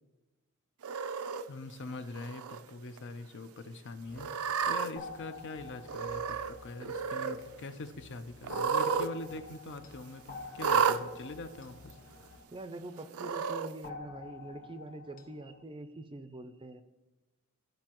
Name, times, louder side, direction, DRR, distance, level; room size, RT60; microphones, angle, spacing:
Cat, 0.8-1.4 2.1-2.6 3.0-3.1 4.2-4.9 5.9-6.5 6.8-7.4 8.4-9.1 9.4-9.5 10.6-11.0 11.9-12.0 13.1-13.7, right 6 dB, 80° right, 0.5 m, -31 dB
voice 1, 1.5-12.0, left 2 dB, 60° left, 9 dB, 0.6 m, -43 dB
sound 1, 4.1-12.4, left 3 dB, 85° left, 0.9 m, -58 dB
sound 2, 5.0-7.7 8.5-13.0 13.8-15.6, left 5 dB, 40° left, 1.1 m, -49 dB
voice 2, 12.5-16.8, right 2 dB, 25° right, 10 dB, 0.5 m, -44 dB
13.0 x 5.3 x 3.0 m, 1.1 s
head